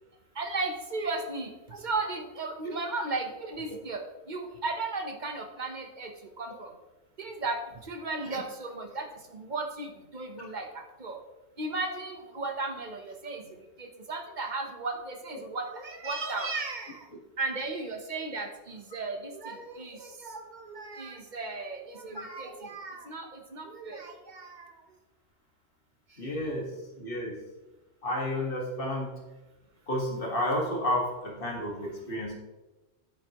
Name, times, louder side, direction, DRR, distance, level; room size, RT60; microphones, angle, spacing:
voice 1, 0.4-4.0 4.3-6.1 6.4-6.7 7.2-7.6 7.8-11.2 11.6-13.4 13.8-17.0 17.4-24.7, right 3 dB, 45° right, 4 dB, 1.1 m, -35 dB
voice 2, 26.2-27.4 28.0-29.2 29.9-32.3, left 1 dB, 50° left, -1 dB, 2.0 m, -31 dB
10.5 x 8.0 x 3.0 m, 1.1 s
omnidirectional pair, 1.2 m